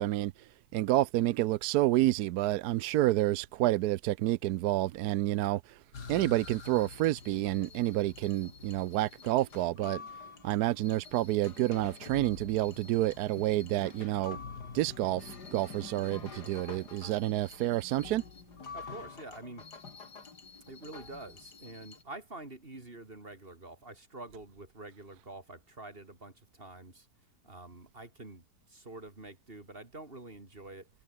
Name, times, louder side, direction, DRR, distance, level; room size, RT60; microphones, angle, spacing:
voice 1, 0.0-5.8 6.1-10.0 10.4-14.4 14.7-18.2, right 15 dB, 75° right, 1.0 m, -29 dB
sound 1, 5.9-22.0, left 5 dB, 70° left, 3.2 m, -47 dB
voice 2, 18.7-19.6 20.7-27.1 27.4-30.9, right 2 dB, 30° right, 3.6 m, -47 dB
omnidirectional pair, 1.8 m